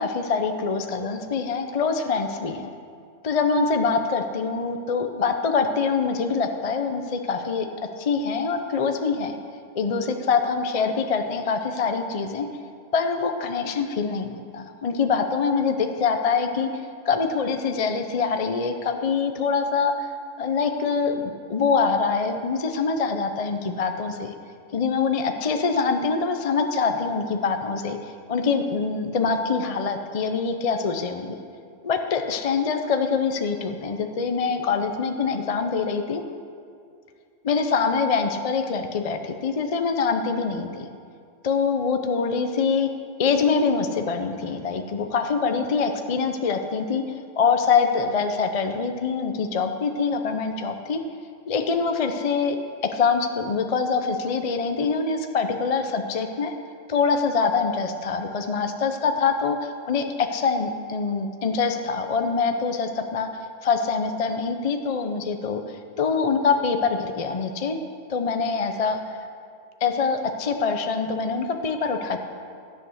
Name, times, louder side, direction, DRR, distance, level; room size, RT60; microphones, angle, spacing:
voice 1, 0.0-2.7 3.2-7.7 8.0-9.4 9.8-12.5 12.9-16.7 17.1-20.1 20.4-24.3 24.7-28.0 28.3-31.4 31.8-36.2 37.4-40.9 41.4-42.9 43.2-47.0 47.4-51.0 51.5-52.6 52.8-56.5 56.9-63.3 63.6-67.8 68.1-69.0 69.8-72.2, left 5 dB, 40° left, 6 dB, 0.6 m, -24 dB
13.0 x 7.9 x 6.3 m, 2.3 s
omnidirectional pair, 1.3 m